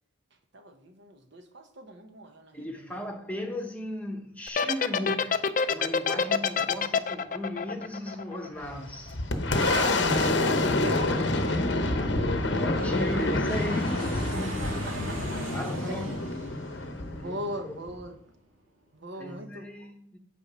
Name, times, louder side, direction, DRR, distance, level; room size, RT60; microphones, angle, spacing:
voice 1, 0.5-3.1 9.5-10.4 10.8-11.8 13.9-15.4 15.9-16.0 17.1-18.2 18.9-19.9, right 1 dB, 60° right, 1.1 m, -39 dB
voice 2, 2.5-9.2 11.1-11.2 12.5-14.0 15.5-16.2 17.2-17.4 17.6-17.7 19.2-20.2, left 1 dB, 5° left, 1.0 m, -36 dB
sound 1, 4.5-8.8, left 5 dB, 40° left, 0.4 m, -26 dB
Aircraft, 7.2-18.4, right 1 dB, 85° right, 2.2 m, -44 dB
Boom, 8.6-18.0, left 2 dB, 60° left, 0.8 m, -27 dB
8.8 x 4.5 x 5.5 m
head